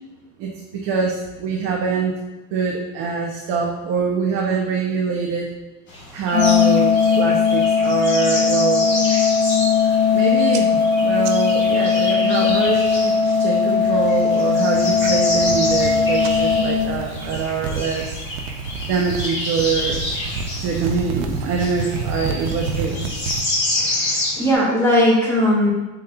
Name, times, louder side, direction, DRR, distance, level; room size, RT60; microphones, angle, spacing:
voice 1, 0.4-2.1 2.5-5.5 6.1-8.9 10.1-13.1 13.4-18.2 18.9-20.0 20.6-23.1, right 5 dB, 40° right, 0 dB, 0.5 m, -24 dB
sound 1, 5.9-24.5, left 2 dB, 30° left, 1.2 m, -29 dB
Organ, 6.3-17.4, left 5 dB, 65° left, 0.6 m, -18 dB
sound 2, 6.4-7.2 7.6-8.0 8.4-8.7 9.2-9.3 9.5-10.2 10.5-13.1 13.3-13.9 14.4-23.4, right 4 dB, 90° right, 0.6 m, -31 dB
voice 2, 23.8-25.7, equal, 5° left, -5 dB, 0.8 m, -18 dB
5.3 x 3.8 x 2.2 m, 1.1 s
supercardioid pair, 150°, 36 cm